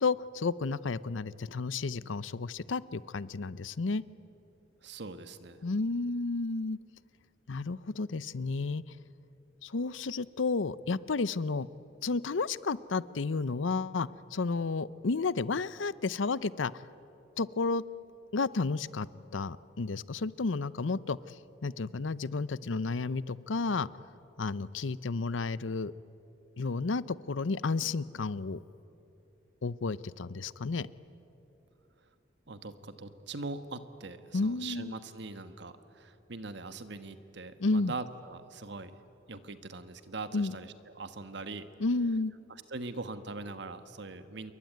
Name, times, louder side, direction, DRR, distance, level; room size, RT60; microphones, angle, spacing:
voice 1, 0.0-4.0 5.6-6.8 7.5-8.8 9.6-11.7 12.0-16.7 17.4-17.8 18.3-19.1 19.3-21.2 21.6-23.9 24.4-25.9 26.6-28.6 29.6-30.9 34.3-34.9 37.6-37.9 40.3-40.5 41.8-42.3, left 3 dB, 90° left, 18 dB, 0.7 m, -31 dB
voice 2, 4.8-5.6 32.5-39.0 39.3-41.7 42.7-44.5, right 3 dB, 65° right, 10 dB, 1.5 m, -42 dB
27.5 x 23.0 x 9.3 m, 2.9 s
head